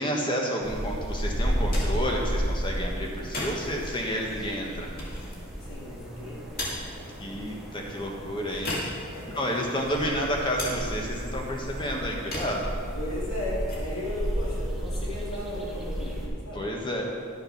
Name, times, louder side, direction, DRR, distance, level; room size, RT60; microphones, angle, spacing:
voice 1, 0.0-4.9 7.2-8.7 9.3-12.7 16.5-17.0, equal, 25° left, 0 dB, 1.3 m, -30 dB
sound 1, 0.6-16.3, equal, ahead, 1.1 m, -33 dB
sound 2, 1.5-15.4, left 1 dB, 45° left, 2.2 m, -40 dB
voice 2, 5.6-6.5 9.1-9.3 12.9-16.7, left 1 dB, 85° left, -5 dB, 2.2 m, -35 dB
11.0 x 6.6 x 5.9 m, 2.2 s
head